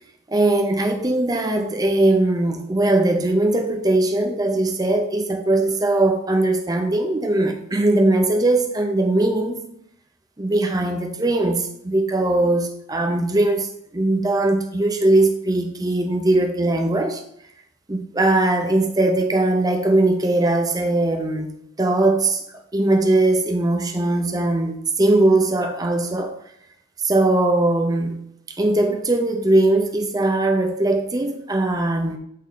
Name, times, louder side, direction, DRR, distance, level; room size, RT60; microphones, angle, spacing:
voice 1, 0.3-9.6 10.4-17.2 17.9-21.5 21.8-22.4 22.7-26.3 27.0-28.2 28.6-32.2, right 2 dB, 15° right, 0.6 m, -20 dB
8.3 x 3.2 x 3.9 m
head